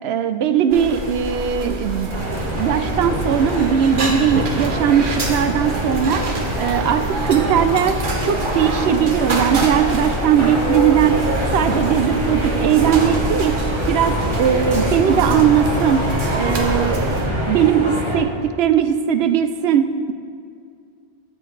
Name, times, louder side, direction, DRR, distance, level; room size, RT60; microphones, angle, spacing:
voice 1, 0.0-2.1 2.5-6.3 6.5-11.2 11.5-13.6 13.9-16.1 16.3-20.1, right 8 dB, 70° right, 10 dB, 0.8 m, -19 dB
sound 1, 0.7-17.3, right 2 dB, 50° right, 1.1 m, -26 dB
sound 2, 2.1-18.2, equal, 25° right, 1.4 m, -25 dB
13.0 x 8.8 x 3.2 m, 2.3 s
omnidirectional pair, 1.2 m